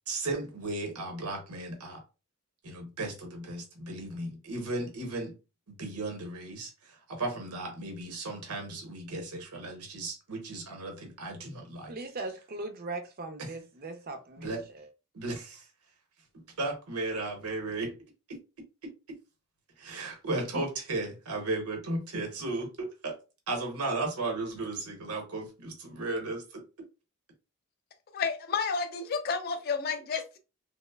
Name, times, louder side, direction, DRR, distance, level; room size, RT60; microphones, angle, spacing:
voice 1, 0.1-2.0 2.6-5.3 5.7-6.7 7.1-11.9 13.4-13.5 14.4-14.7 15.1-15.6 16.3-18.0 18.3-18.4 18.8-18.9 19.8-23.2 23.5-26.6, right 2 dB, 85° right, 0.8 m, -35 dB
voice 2, 11.9-14.9, right 2 dB, 40° right, 0.4 m, -39 dB
voice 3, 28.1-30.4, left 5 dB, 45° left, 0.4 m, -31 dB
3.0 x 2.0 x 2.2 m
head